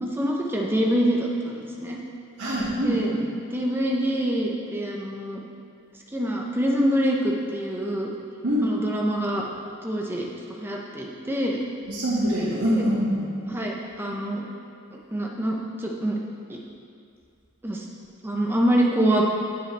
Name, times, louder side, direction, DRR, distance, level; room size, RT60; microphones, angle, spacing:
voice 1, 0.0-2.0 2.8-3.1 3.5-5.4 6.1-8.1 8.6-9.4 9.8-11.6 12.8-12.9 13.5-14.4 14.9-16.2 16.5-16.6 17.6-17.9 18.2-19.2, equal, 10° right, -2 dB, 0.8 m, -25 dB
voice 2, 2.4-3.2 8.4-8.7 11.9-13.2, equal, 80° right, -14 dB, 2.2 m, -24 dB
9.0 x 7.5 x 3.5 m, 2.4 s
head